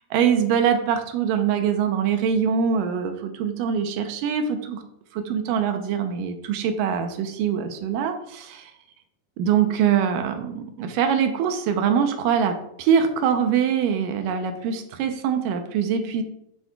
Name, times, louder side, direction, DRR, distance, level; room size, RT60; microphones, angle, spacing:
voice 1, 0.1-4.8 5.1-8.7 9.4-16.2, right 7 dB, 80° right, 6 dB, 1.9 m, -23 dB
11.0 x 7.1 x 2.3 m, 0.76 s
omnidirectional pair, 4.7 m